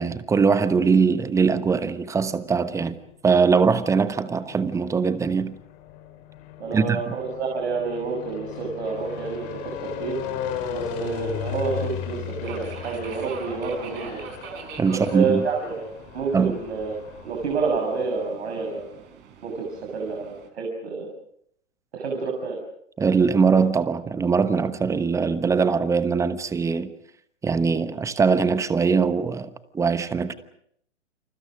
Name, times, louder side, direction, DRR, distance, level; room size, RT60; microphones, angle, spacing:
voice 1, 0.0-3.0 3.2-5.6 6.7-7.1 14.8-15.5 16.3-16.6 23.0-26.9 27.4-30.3, right 5 dB, 10° right, 1.1 m, -21 dB
sound 1, 2.3-3.0 3.8-17.8, left 9 dB, 35° left, 3.7 m, -37 dB
voice 2, 6.6-9.5 9.8-10.2 10.7-14.2 14.9-15.9 16.1-16.9 17.2-18.9 19.4-21.1 21.9-22.6, right 4 dB, 60° right, 6.6 m, -28 dB
Subway metro underground, 9.0-20.5, right 5 dB, 30° right, 4.6 m, -44 dB
29.5 x 27.5 x 5.1 m
figure-of-eight pair, 115°, 37 cm